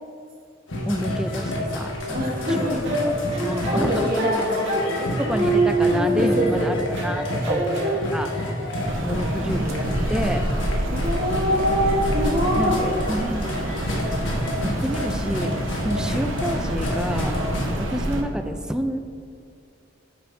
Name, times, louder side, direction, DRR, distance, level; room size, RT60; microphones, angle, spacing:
sound 1, 0.7-17.7, left 1 dB, 70° left, 1.3 m, -29 dB
voice 1, 0.9-2.8 3.4-4.3 5.2-6.8 7.0-8.6 9.0-10.5 12.6-12.7 13.1-13.5 14.6-15.5 15.8-17.4 17.8-19.0, equal, 5° right, 7 dB, 0.3 m, -29 dB
voice 2, 2.1-3.0 3.5-5.1 6.1-6.7 7.4-7.6 8.3-8.9 10.9-12.9, equal, 50° right, -3 dB, 1.1 m, -25 dB
sound 2, 2.9-6.5 7.0-8.0, right 1 dB, 70° right, 1.6 m, -25 dB
sound 3, 8.8-18.2, right 1 dB, 85° right, 0.9 m, -27 dB
9.4 x 6.7 x 2.6 m, 2.5 s
head